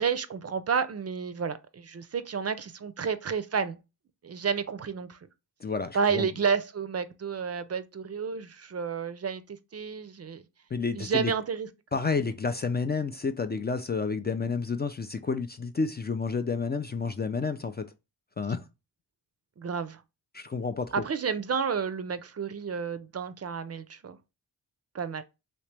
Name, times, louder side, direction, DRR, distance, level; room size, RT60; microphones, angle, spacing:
voice 1, 0.0-3.8 4.2-5.2 5.9-10.4 10.9-11.7 19.6-20.0 20.9-24.2 24.9-25.2, right 6 dB, 40° right, 0.4 m, -31 dB
voice 2, 5.6-6.3 10.7-11.3 11.9-17.9 18.4-18.6 20.3-20.9, left 4 dB, 25° left, 0.3 m, -30 dB
2.9 x 2.9 x 3.3 m
cardioid pair, 45°, 39 cm